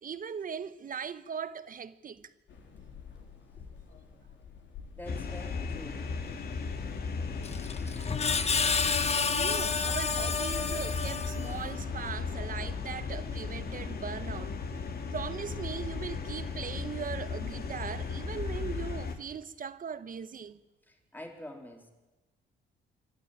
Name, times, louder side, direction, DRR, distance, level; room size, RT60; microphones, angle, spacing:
voice 1, 0.0-2.3 8.1-8.5 9.3-14.6 15.1-20.6, right 7 dB, 45° right, 1.1 m, -39 dB
sound 1, 2.5-15.3, left 6 dB, 70° left, 3.9 m, -54 dB
sound 2, 5.0-19.2, left 5 dB, 50° left, 2.4 m, -36 dB
voice 2, 5.0-6.0 20.9-21.9, left 1 dB, 10° left, 3.8 m, -45 dB
Screech, 7.4-11.7, left 5 dB, 30° left, 1.1 m, -30 dB
25.5 x 12.5 x 9.2 m
cardioid pair, 90°, 20 cm